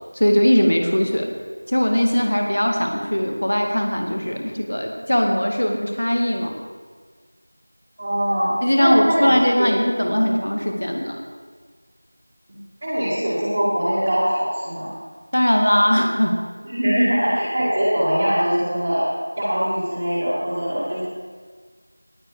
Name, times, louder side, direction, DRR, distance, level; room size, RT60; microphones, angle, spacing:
voice 1, 0.1-1.3 1.7-6.6 8.6-11.2 15.3-16.4, equal, 55° left, 2 dB, 2.1 m, -20 dB
voice 2, 8.0-8.5 8.8-9.3 9.6-9.7 10.2-10.3 12.5-14.9 16.6-19.1 19.4-21.0, equal, 20° right, -10 dB, 2.2 m, -22 dB
18.5 x 7.5 x 4.9 m, 1.6 s
figure-of-eight pair, 175°, 0 cm